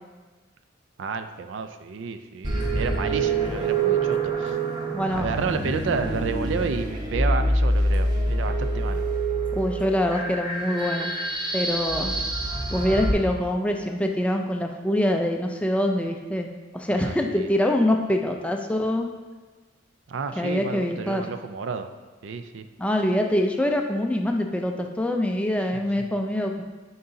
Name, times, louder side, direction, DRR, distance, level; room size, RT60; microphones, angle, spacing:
voice 1, 1.0-4.6 5.1-9.0 12.0-12.3 16.9-17.5 20.1-21.9 22.2-22.7 25.7-26.1, right 5 dB, 70° right, 9 dB, 0.4 m, -31 dB
sound 1, 2.4-13.1, right 2 dB, 20° right, 0.8 m, -26 dB
voice 2, 4.9-5.3 9.5-11.1 11.5-12.1 12.7-16.5 16.7-19.1 20.4-21.2 22.8-26.6, left 1 dB, 5° left, 3 dB, 0.3 m, -24 dB
9.3 x 3.9 x 2.6 m, 1.3 s
head